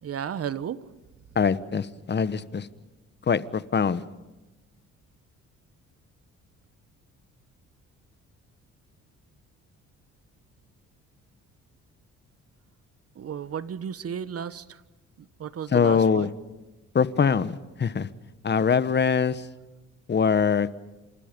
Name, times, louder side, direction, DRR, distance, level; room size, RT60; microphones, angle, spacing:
voice 1, 0.0-0.8 13.2-14.8 15.4-16.3, right 8 dB, 50° right, 15 dB, 1.3 m, -33 dB
voice 2, 1.3-2.7 3.3-4.0 15.7-16.3 16.9-18.1 18.4-19.5 20.1-20.8, left 6 dB, 35° left, 14 dB, 1.3 m, -23 dB
30.0 x 27.0 x 5.4 m, 1.1 s
cardioid pair, 90°, 30 cm